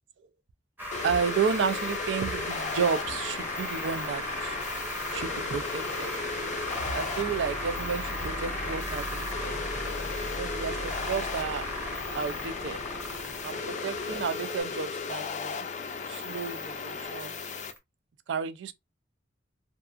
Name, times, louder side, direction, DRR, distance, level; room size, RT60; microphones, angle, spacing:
sound 1, 0.8-17.8, equal, 10° right, 0.7 m, -37 dB
sound 2, 0.9-17.7, left 5 dB, 40° left, 0.4 m, -36 dB
voice 1, 1.0-4.6 5.1-6.1 6.8-9.5 10.4-11.6 12.1-12.8 13.4-15.7 16.1-17.4 18.3-18.7, right 6 dB, 70° right, 0.4 m, -32 dB
sound 3, 2.2-14.6, right 2 dB, 40° right, 0.9 m, -46 dB
2.6 x 2.3 x 2.4 m
head